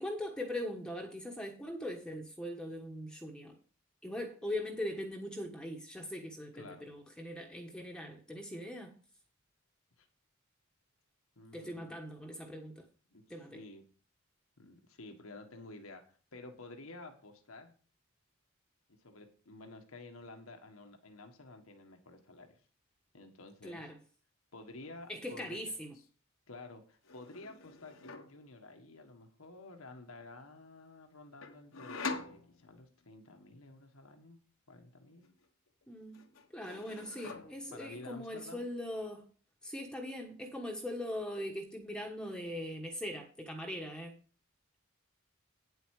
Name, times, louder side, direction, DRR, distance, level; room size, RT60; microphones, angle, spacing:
voice 1, 0.0-3.6 4.0-8.9 11.5-12.9 13.3-13.6 23.6-24.0 25.1-25.9 35.9-36.2 36.5-39.3 39.6-44.2, left 1 dB, 5° left, 1.2 m, -41 dB
voice 2, 6.5-6.9 10.0-10.1 11.4-12.0 13.1-13.8 14.6-17.7 19.0-22.6 23.1-23.9 24.5-25.6 26.5-34.4 34.7-35.3 37.7-38.6, left 2 dB, 90° left, 1.5 m, -51 dB
sound 1, 24.7-25.0 25.3-26.1 27.0-28.4 31.4-33.0 35.2-35.8 36.1-37.8, left 4 dB, 70° left, 1.1 m, -45 dB
9.4 x 8.1 x 4.8 m
head